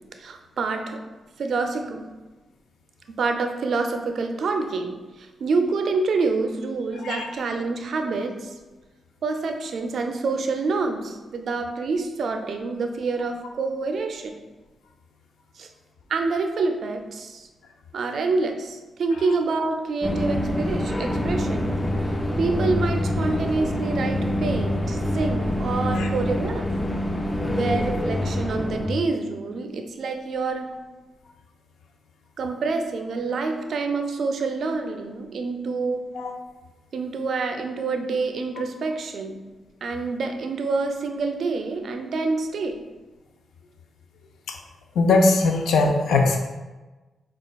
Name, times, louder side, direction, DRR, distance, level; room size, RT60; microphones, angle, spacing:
voice 1, 0.2-1.0 1.4-2.1 3.2-8.5 9.2-14.4 15.6-15.7 16.1-17.5 17.9-21.8 22.4-26.7 27.5-30.7 32.4-36.1 36.9-39.4 39.8-42.8, right 3 dB, 65° right, 5 dB, 0.4 m, -27 dB
sound 1, 20.0-28.9, left 1 dB, 15° left, 0.4 m, -25 dB
voice 2, 45.0-46.4, left 3 dB, 85° left, 3 dB, 0.4 m, -20 dB
4.9 x 2.3 x 2.3 m, 1.2 s
cardioid pair, 70°, 0 cm